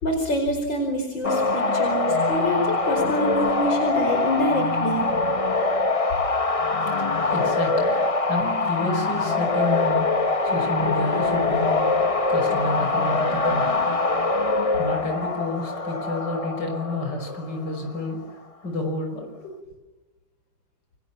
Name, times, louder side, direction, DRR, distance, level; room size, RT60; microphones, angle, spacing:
voice 1, 0.0-5.1, equal, 85° left, 4 dB, 5.6 m, -26 dB
sound 1, 1.2-18.0, left 3 dB, 20° left, 1.1 m, -23 dB
voice 2, 6.8-8.0 8.3-14.0 14.8-18.2 18.6-19.5, left 2 dB, 70° left, 4 dB, 6.5 m, -30 dB
29.0 x 26.0 x 7.3 m, 1.2 s
omnidirectional pair, 2.0 m